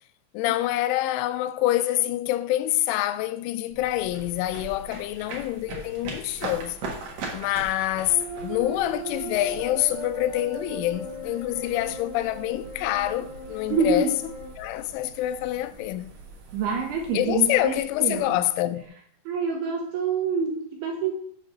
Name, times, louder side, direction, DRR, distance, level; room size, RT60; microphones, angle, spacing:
voice 1, 0.3-6.8 7.3-14.1 14.6-16.2 17.1-18.9, left 14 dB, 90° left, 3.0 m, -26 dB
sound 1, 3.7-18.9, right 3 dB, 60° right, 1.9 m, -42 dB
sound 2, 8.1-14.5, right 1 dB, 35° right, 1.4 m, -38 dB
voice 2, 13.7-14.2 16.5-18.4 19.3-21.1, right 5 dB, 75° right, 2.5 m, -26 dB
7.4 x 4.6 x 6.4 m
omnidirectional pair, 5.4 m